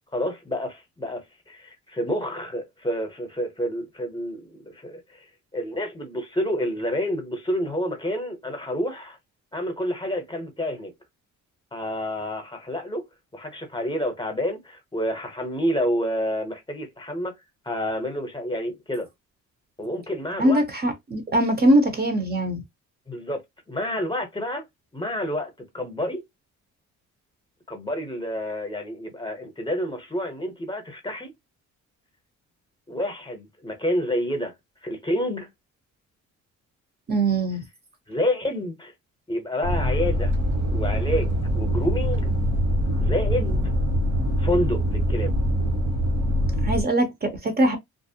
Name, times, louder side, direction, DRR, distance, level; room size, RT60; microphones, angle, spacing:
voice 1, 0.1-5.3 5.5-9.2 9.5-10.9 11.7-13.1 13.3-17.4 17.6-19.1 19.8-20.6 23.1-23.4 23.7-24.6 24.9-26.2 27.7-31.3 32.9-34.5 34.8-35.5 38.1-38.9 39.3-40.3 40.7-42.3 43.0-43.6 44.4-45.4, equal, 15° left, 0.8 m, -29 dB
voice 2, 20.4-22.6 37.1-37.6 46.6-47.8, right 1 dB, 30° right, 0.6 m, -21 dB
sound 1, 39.6-46.8, equal, 70° right, 1.2 m, -23 dB
2.5 x 2.0 x 2.7 m
cardioid pair, 90°, 30 cm